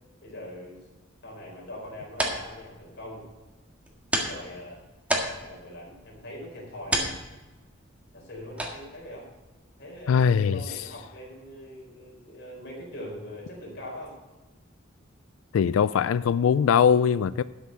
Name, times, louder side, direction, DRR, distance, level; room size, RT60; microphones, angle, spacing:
voice 1, 0.2-0.8 1.2-3.2 4.2-4.8 5.4-7.0 8.1-9.3 9.8-14.1, left 1 dB, 60° left, 4.2 m, -42 dB
sound 1, 1.7-11.0, right 1 dB, 5° right, 1.6 m, -35 dB
voice 2, 10.1-10.6 15.5-17.4, left 7 dB, 85° left, 0.3 m, -21 dB
12.0 x 6.9 x 6.3 m
head